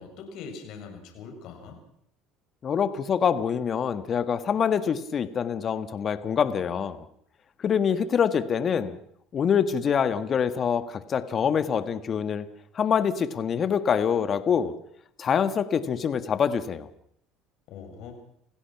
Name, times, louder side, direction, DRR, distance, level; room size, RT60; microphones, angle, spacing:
voice 1, 0.0-1.8 17.7-18.1, left 5 dB, 65° left, 4 dB, 7.4 m, -42 dB
voice 2, 2.6-7.0 7.6-9.0 9.3-12.5 12.7-14.7 15.2-16.9, left 7 dB, 40° left, 12 dB, 1.7 m, -25 dB
30.0 x 16.5 x 6.0 m, 0.69 s
supercardioid pair, 80°, 0 cm